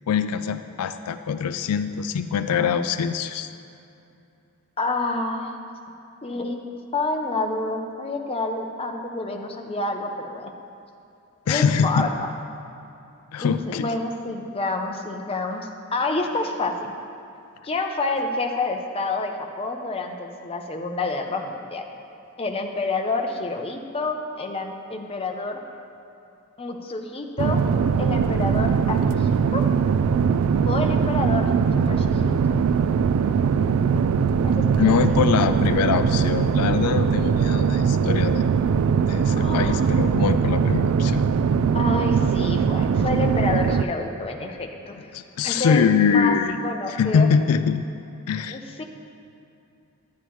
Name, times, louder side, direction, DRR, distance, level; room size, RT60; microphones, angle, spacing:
voice 1, 0.1-3.5 11.5-12.1 13.3-13.9 34.8-38.5 39.1-41.2 45.1-46.6 46.9-47.9 48.3-48.6, left 6 dB, 90° left, 10 dB, 0.4 m, -23 dB
voice 2, 4.8-5.6 6.2-6.6 6.9-10.5 11.5-12.3 13.4-16.9 17.6-21.8 22.4-25.6 26.6-27.6 28.0-29.6 30.6-31.5 31.9-32.6 34.4-35.2 39.4-40.0 41.7-45.1 45.4-46.4 46.6-47.3 48.5-48.8, left 2 dB, 25° left, 3 dB, 0.6 m, -28 dB
sound 1, 27.4-43.8, right 6 dB, 70° right, 0.3 m, -21 dB
11.0 x 9.4 x 3.1 m, 2.7 s
head